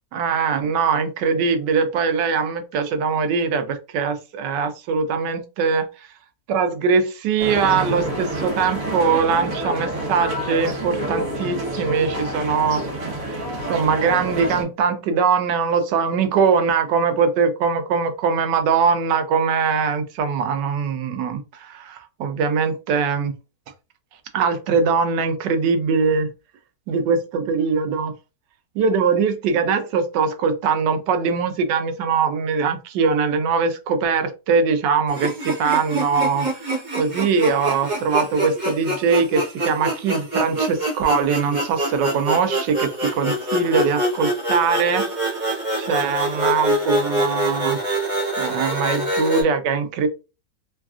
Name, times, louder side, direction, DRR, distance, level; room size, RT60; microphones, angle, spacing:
voice 1, 0.1-5.9 6.5-13.1 13.7-23.3 24.3-26.3 26.9-28.1 28.8-45.0 45.8-47.8 48.4-50.1, right 5 dB, 85° right, 1.2 m, -21 dB
sound 1, 7.4-14.6, right 1 dB, 55° right, 1.3 m, -28 dB
sound 2, 35.1-49.4, right 1 dB, 30° right, 0.9 m, -25 dB
3.3 x 2.4 x 2.3 m
omnidirectional pair, 1.8 m